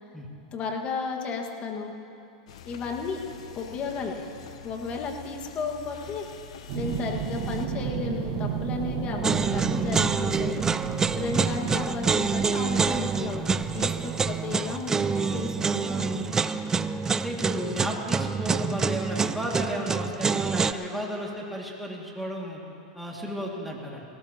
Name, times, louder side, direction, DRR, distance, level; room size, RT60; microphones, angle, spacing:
voice 1, 0.5-1.9 2.6-3.2 3.5-4.3 4.6-6.2 6.7-10.7 11.1-16.4, left 4 dB, 35° left, 1 dB, 1.8 m, -33 dB
sound 1, 2.5-7.7, left 8 dB, 80° left, 0.9 m, -46 dB
sound 2, 6.7-14.9 16.3-16.4, right 7 dB, 60° right, 1.5 m, -33 dB
sound 3, 9.2-20.7, right 5 dB, 15° right, 0.4 m, -27 dB
voice 2, 17.1-22.6 22.9-24.0, equal, ahead, -3 dB, 2.2 m, -33 dB
19.5 x 17.5 x 3.0 m, 2.8 s
supercardioid pair, 125°, 3 cm